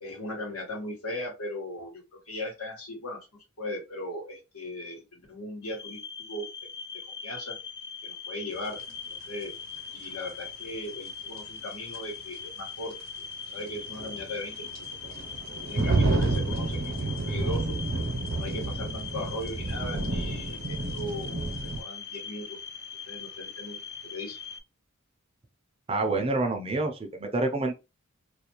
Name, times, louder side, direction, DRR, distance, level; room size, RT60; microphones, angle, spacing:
voice 1, 0.0-3.2 3.6-6.5 7.2-7.6 8.0-8.8 9.3-9.5 9.9-12.9 13.5-14.8 15.7-17.8 18.4-22.6 23.0-23.8 24.0-24.4, left 1 dB, 90° left, 1.2 m, -38 dB
sound 1, 5.6-24.6, left 6 dB, 50° left, 0.4 m, -41 dB
sound 2, 8.8-8.9 11.4-11.5 11.9-12.0 13.6-21.8, right 2 dB, 65° right, 0.7 m, -30 dB
voice 2, 25.9-27.7, right 2 dB, 25° right, 0.4 m, -27 dB
2.5 x 2.2 x 2.9 m
head